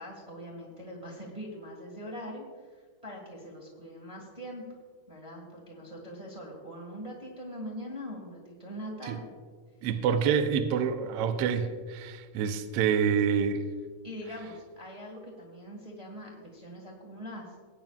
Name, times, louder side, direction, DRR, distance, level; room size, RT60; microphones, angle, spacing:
voice 1, 0.0-2.5 2.7-4.6 5.1-9.3 14.0-17.5, equal, 20° right, -1 dB, 1.3 m, -42 dB
voice 2, 9.8-13.6, right 7 dB, 75° right, 7 dB, 1.4 m, -27 dB
19.5 x 9.1 x 2.4 m, 1.5 s
omnidirectional pair, 3.4 m